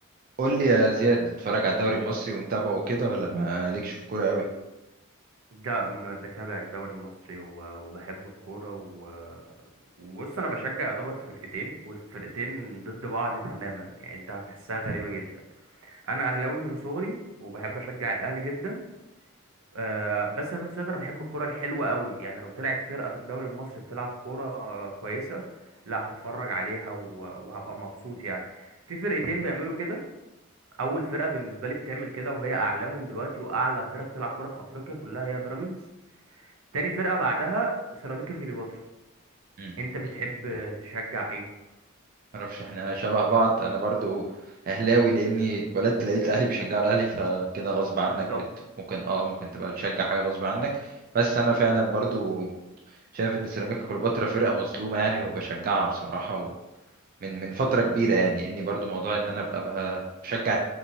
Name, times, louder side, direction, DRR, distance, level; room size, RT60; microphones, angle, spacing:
voice 1, 0.4-4.4 14.9-15.0 39.6-39.7 42.3-44.2 44.7-48.3 48.9-50.7 51.1-52.5 53.1-56.5 57.2-60.6, right 3 dB, 45° right, -2 dB, 0.3 m, -26 dB
voice 2, 5.5-9.4 10.0-11.2 11.5-15.3 15.8-18.8 19.7-25.4 25.9-30.0 30.8-35.8 36.3-38.8 39.8-41.4 48.1-48.4, right 2 dB, 80° right, 0 dB, 0.6 m, -32 dB
2.8 x 2.6 x 2.7 m, 0.98 s
head